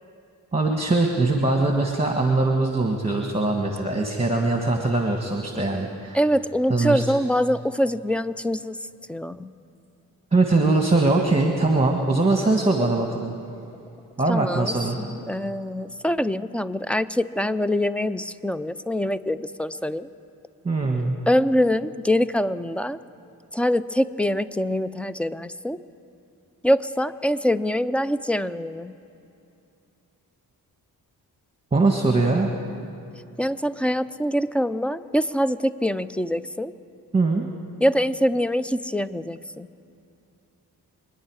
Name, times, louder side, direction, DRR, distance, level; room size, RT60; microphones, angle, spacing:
voice 1, 0.5-6.2 6.7-7.2 10.3-13.3 14.2-15.0 20.6-21.2 31.7-32.5 37.1-37.5, right 3 dB, 15° right, 2 dB, 1.6 m, -22 dB
voice 2, 6.1-8.8 9.1-9.5 14.3-20.1 21.3-23.0 23.5-25.8 26.6-28.9 33.4-36.7 37.8-39.7, equal, 5° left, 14 dB, 0.5 m, -24 dB
25.5 x 10.0 x 4.8 m, 2.7 s
cardioid pair, 50°, 39 cm